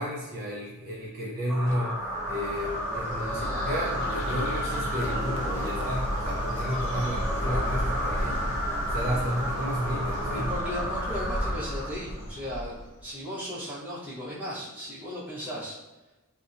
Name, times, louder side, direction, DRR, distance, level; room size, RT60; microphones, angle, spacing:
voice 1, 0.0-8.5 8.9-10.5, equal, 40° right, -4 dB, 0.4 m, -32 dB
sound 1, 1.5-12.2, equal, 10° left, 1.3 m, -32 dB
Bird, 1.7-13.1, left 1 dB, 60° left, 0.5 m, -34 dB
voice 2, 10.3-15.8, equal, 10° right, -10 dB, 0.8 m, -36 dB
2.6 x 2.1 x 2.4 m, 1.1 s
head